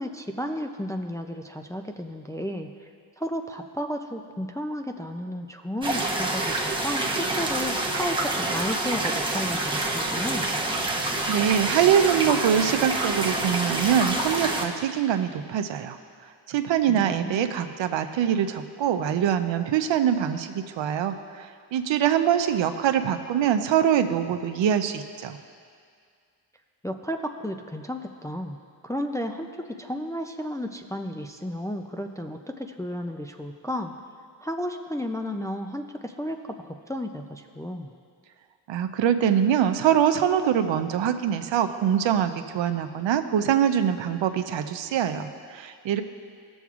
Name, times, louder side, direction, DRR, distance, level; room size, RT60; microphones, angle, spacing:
voice 1, 0.0-2.9 3.2-10.5 16.9-17.7 26.8-28.6 28.8-33.9 34.4-37.9, equal, 10° left, 4 dB, 0.3 m, -33 dB
sound 1, 5.8-14.6, right 2 dB, 10° right, 0.9 m, -27 dB
voice 2, 11.3-16.0 16.5-25.4 38.7-46.0, right 9 dB, 80° right, 8 dB, 0.6 m, -24 dB
16.5 x 7.1 x 2.4 m, 2.2 s
cardioid pair, 100°, 44 cm